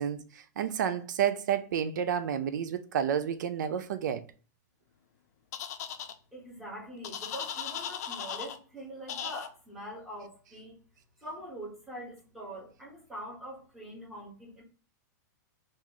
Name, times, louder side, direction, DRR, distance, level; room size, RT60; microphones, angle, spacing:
voice 1, 0.0-4.2, right 8 dB, 80° right, 0.4 m, -30 dB
sound 1, 5.5-6.1 7.0-8.6 9.1-9.5, left 9 dB, 60° left, 0.4 m, -37 dB
voice 2, 6.3-10.8 11.2-14.6, right 1 dB, ahead, 1.0 m, -44 dB
3.0 x 2.5 x 3.6 m
supercardioid pair, 165°, 10 cm